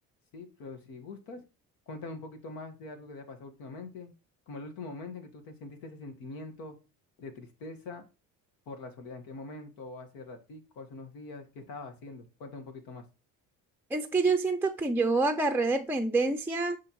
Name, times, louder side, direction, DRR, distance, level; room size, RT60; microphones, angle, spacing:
voice 1, 0.3-1.4 1.9-4.1 4.5-6.8 7.2-8.1 8.6-13.0, left 3 dB, 85° left, 1.6 m, -43 dB
voice 2, 13.9-16.8, right 3 dB, 5° right, 0.4 m, -27 dB
10.5 x 3.6 x 3.0 m
cardioid pair, 90°, 35 cm